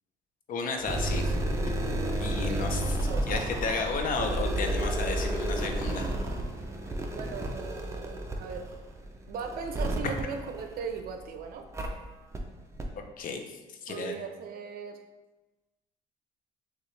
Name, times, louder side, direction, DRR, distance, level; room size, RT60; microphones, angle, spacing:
voice 1, 0.5-1.3 1.7-1.8 2.2-3.0 3.3-6.1 10.0-10.1 13.2-14.1, left 4 dB, 55° left, 4 dB, 0.7 m, -33 dB
sound 1, 0.8-11.2 11.7-11.9 12.3-12.4 12.8-12.9, right 1 dB, 15° right, 0.6 m, -31 dB
voice 2, 3.1-3.4 7.1-8.7 9.3-11.6 13.9-15.0, right 6 dB, 65° right, 6 dB, 0.6 m, -38 dB
6.5 x 2.5 x 3.2 m, 1.1 s
cardioid pair, 110°, 17 cm